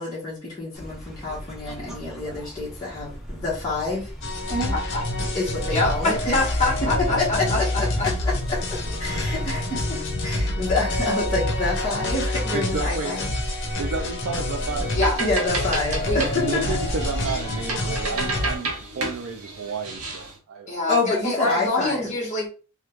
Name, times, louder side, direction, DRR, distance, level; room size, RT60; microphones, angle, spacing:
voice 1, 0.0-4.1 4.5-4.7 5.3-6.5 7.2-7.5 8.0-8.1 8.5-13.3 15.2-16.8 20.9-22.1, left 3 dB, 15° left, -9 dB, 1.1 m, -28 dB
sound 1, 0.7-10.1, equal, ahead, 0.7 m, -38 dB
sound 2, 4.2-18.6, left 1 dB, 55° left, 0.8 m, -27 dB
voice 2, 4.7-5.0 5.7-8.1 14.9-15.2 16.0-16.2 20.7-22.5, left 2 dB, 35° left, -1 dB, 1.3 m, -25 dB
voice 3, 12.5-13.2 13.8-15.0 16.4-20.7, right 4 dB, 65° right, 4 dB, 0.4 m, -32 dB
sound 3, 14.7-20.4, right 3 dB, 85° right, 1.0 m, -32 dB
3.5 x 2.2 x 3.0 m, 0.36 s
head